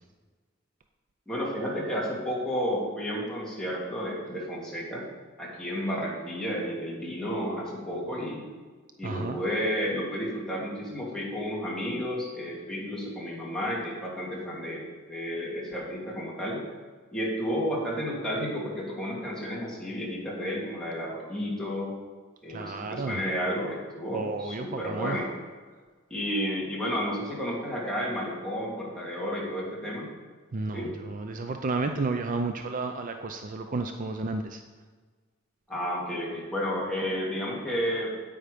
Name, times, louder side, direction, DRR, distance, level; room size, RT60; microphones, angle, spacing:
voice 1, 1.3-5.0 5.4-8.5 9.0-16.6 17.1-21.9 22.4-25.3 26.1-30.1 30.7-30.9 35.7-38.2, equal, 5° left, -5 dB, 2.6 m, -32 dB
voice 2, 9.0-9.4 22.5-23.2 24.1-25.2 30.5-34.6, right 3 dB, 40° right, 6 dB, 0.5 m, -32 dB
9.2 x 8.7 x 5.1 m, 1.5 s
head